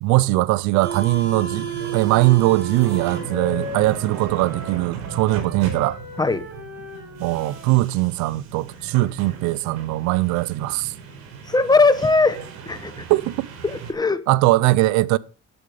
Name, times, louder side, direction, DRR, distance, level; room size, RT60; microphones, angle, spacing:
voice 1, 0.0-6.0 7.2-10.9 13.1-13.5 14.3-15.2, right 19 dB, 80° right, 0.6 m, -20 dB
sound 1, 0.8-13.9, right 7 dB, 60° right, 5.8 m, -34 dB
Wind instrument woodwind instrument, 1.6-7.8, left 1 dB, 35° right, 5.8 m, -38 dB
voice 2, 11.5-12.4 12.7-13.0 13.6-14.2, left 3 dB, 15° left, 1.1 m, -19 dB
12.0 x 8.6 x 5.0 m
cardioid pair, 115°, 29 cm